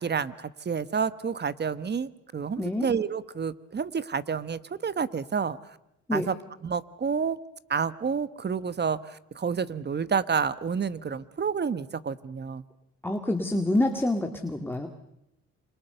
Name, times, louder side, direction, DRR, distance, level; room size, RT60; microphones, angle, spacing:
voice 1, 0.0-5.6 6.1-6.4 6.6-7.4 7.7-12.6, right 6 dB, 35° right, 15 dB, 1.2 m, -29 dB
voice 2, 13.0-14.9, left 1 dB, 5° left, 4 dB, 2.0 m, -27 dB
28.0 x 26.0 x 6.8 m, 0.82 s
cardioid pair, 90°, 30 cm